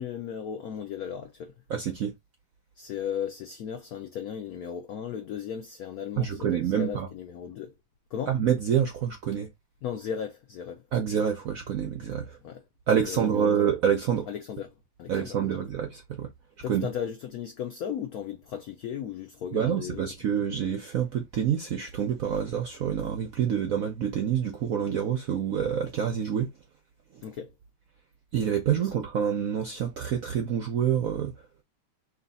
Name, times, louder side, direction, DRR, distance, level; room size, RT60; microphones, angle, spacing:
voice 1, 0.0-1.5 2.8-7.7 8.1-8.3 9.8-10.8 12.4-12.6 13.0-13.6 14.3-14.7 15.0-15.6 16.6-20.1 27.2-27.5 28.8-28.9, left 8 dB, 75° left, 0.8 m, -36 dB
voice 2, 1.7-2.1 6.2-7.1 8.3-9.5 10.9-12.4 12.9-14.3 15.1-16.3 16.7-16.9 19.5-26.5 28.3-31.3, right 8 dB, 65° right, 0.8 m, -27 dB
3.2 x 2.9 x 4.0 m
omnidirectional pair, 2.2 m